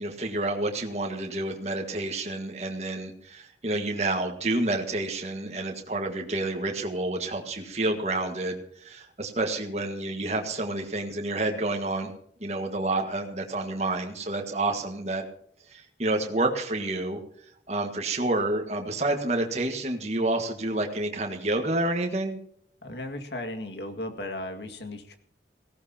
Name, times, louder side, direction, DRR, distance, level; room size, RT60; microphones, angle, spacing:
voice 1, 0.0-12.1 12.4-15.2 15.7-17.2 17.7-22.4, right 2 dB, 40° right, 3 dB, 1.6 m, -29 dB
voice 2, 22.8-25.2, left 1 dB, 70° left, 5 dB, 2.0 m, -36 dB
18.0 x 16.5 x 2.9 m, 0.65 s
head